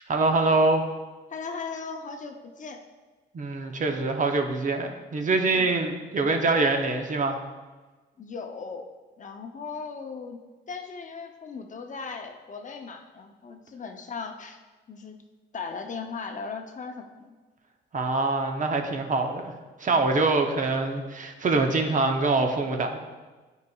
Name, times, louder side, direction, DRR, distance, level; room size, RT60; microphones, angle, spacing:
voice 1, 0.1-0.9 3.3-7.4 17.9-19.5 19.8-23.0, right 3 dB, 40° right, 4 dB, 0.7 m, -24 dB
voice 2, 1.3-2.8 5.5-5.7 8.2-8.9 9.2-10.4 10.7-14.6 14.9-15.2 15.5-17.3, left 5 dB, 40° left, 4 dB, 0.6 m, -37 dB
9.3 x 4.8 x 2.4 m, 1.3 s
cardioid pair, 90°, 20 cm